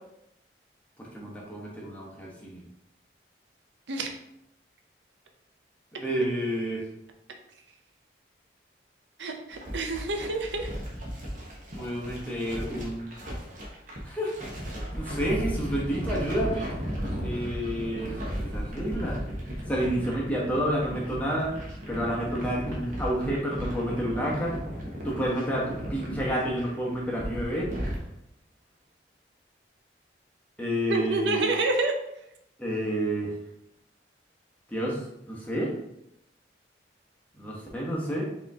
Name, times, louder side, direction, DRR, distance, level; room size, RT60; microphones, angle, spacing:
voice 1, 1.0-2.6 5.9-6.9 11.7-13.1 14.0-14.4 14.7-16.7 17.2-19.2 19.7-21.6 21.9-24.6 25.0-27.7 30.6-31.4 32.6-33.4 34.7-35.7 37.4-38.2, equal, 10° left, -4 dB, 1.0 m, -30 dB
voice 2, 9.2-10.7 30.9-31.9, right 2 dB, 80° right, 4 dB, 0.6 m, -28 dB
sound 1, 9.5-28.0, equal, 45° right, 1.1 m, -36 dB
4.8 x 3.0 x 3.5 m, 0.79 s
head